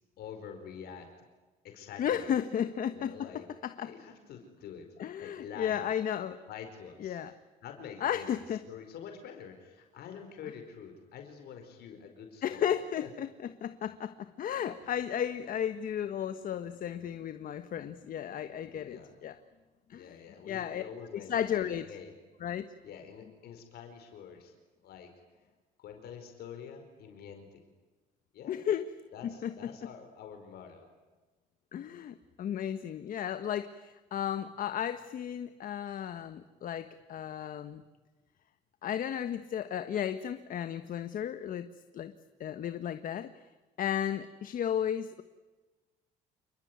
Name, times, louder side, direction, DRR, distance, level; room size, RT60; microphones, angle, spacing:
voice 1, 0.2-1.1 1.6-2.3 2.9-3.4 3.8-4.9 5.2-5.8 6.5-7.2 7.6-12.7 13.0-13.1 18.7-19.1 19.9-22.1 22.8-24.5 24.8-25.1 25.8-27.6 28.3-28.6 29.1-30.9, left 7 dB, 70° left, 5 dB, 4.9 m, -47 dB
voice 2, 2.0-3.9 5.0-6.4 7.0-7.3 8.0-8.6 12.4-19.3 19.9-20.2 20.4-20.8 21.1-21.8 22.4-22.6 28.5-28.9 29.2-29.9 31.7-37.8 38.8-41.7 41.9-42.1 42.4-43.5 43.8-45.2, left 9 dB, 55° left, 10 dB, 1.4 m, -34 dB
28.5 x 21.0 x 9.6 m, 1.2 s
cardioid pair, 110°, 17 cm